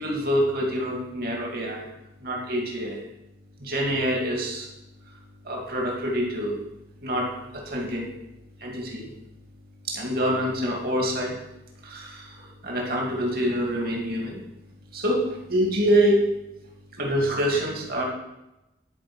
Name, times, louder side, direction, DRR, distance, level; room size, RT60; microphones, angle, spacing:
voice 1, 0.0-1.9 2.2-3.0 3.6-4.7 5.4-6.6 7.0-8.1 8.6-9.1 9.9-11.4 11.8-14.4 14.9-16.3 16.9-18.0, equal, 50° right, -1 dB, 2.3 m, -26 dB
12.0 x 4.8 x 6.2 m, 0.93 s
head